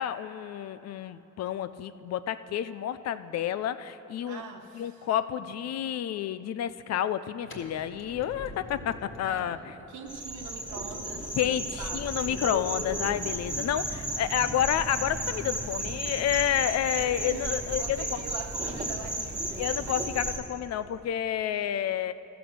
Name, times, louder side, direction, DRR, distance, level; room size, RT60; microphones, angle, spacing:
voice 1, 0.0-4.4 4.7-9.6 11.3-18.0 19.6-22.1, left 10 dB, 60° left, 14 dB, 0.5 m, -30 dB
voice 2, 4.3-5.1 9.2-9.5 9.9-12.2 14.5-14.7 17.2-20.0, right 5 dB, 75° right, 3 dB, 1.2 m, -43 dB
sound 1, 7.4-13.3, left 1 dB, 40° left, 1.6 m, -48 dB
sound 2, 10.1-20.4, right 1 dB, 25° right, 1.7 m, -34 dB
13.5 x 7.0 x 6.3 m, 3.0 s
cardioid pair, 90°, 30 cm